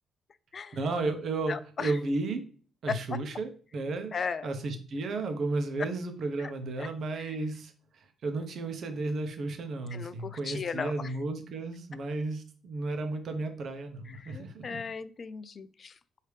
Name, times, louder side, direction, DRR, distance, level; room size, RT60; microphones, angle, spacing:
voice 1, 0.7-2.4 2.8-4.1 4.4-14.8, right 3 dB, 60° right, 6 dB, 0.8 m, -33 dB
voice 2, 1.5-2.0 2.9-3.2 4.1-4.5 5.8-5.9 6.4-6.5 6.8-7.4 9.9-11.1 14.1-16.2, left 5 dB, 45° left, 15 dB, 0.3 m, -37 dB
4.8 x 2.8 x 3.3 m, 0.41 s
cardioid pair, 90°, 0 cm